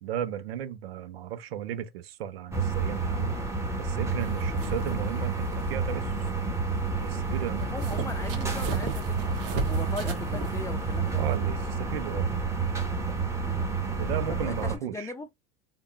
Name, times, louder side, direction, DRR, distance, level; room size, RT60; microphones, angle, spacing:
voice 1, 0.0-3.3 3.8-6.1 7.0-7.8 11.2-12.3 13.1-13.2 14.0-15.1, right 10 dB, 90° right, 0.7 m, -35 dB
sound 1, 2.5-14.8, right 4 dB, 10° right, 0.9 m, -29 dB
sound 2, 4.2-11.4, right 4 dB, 70° right, 1.1 m, -38 dB
voice 2, 7.7-11.2 13.4-13.7 14.3-15.3, left 3 dB, 10° left, 0.5 m, -39 dB
3.5 x 2.3 x 3.3 m
supercardioid pair, 110°, 29 cm